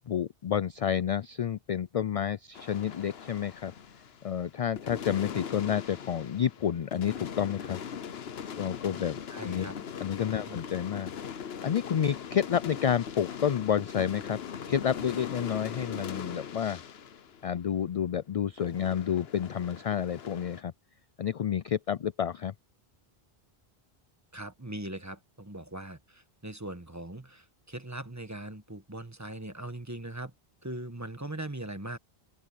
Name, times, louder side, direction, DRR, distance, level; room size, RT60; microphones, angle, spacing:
voice 1, 0.0-3.7 4.2-7.8 8.5-9.7 10.0-11.1 11.6-14.4 14.7-16.8 17.4-20.7 21.2-22.5, left 9 dB, 55° left, 0.4 m, -30 dB
sound 1, 2.5-4.4 4.8-18.2 18.6-20.6, left 7 dB, 75° left, 1.1 m, -41 dB
voice 2, 9.3-9.7 10.4-10.6 24.3-30.3 30.6-32.0, right 1 dB, 15° right, 1.4 m, -40 dB
open air
omnidirectional pair, 1.1 m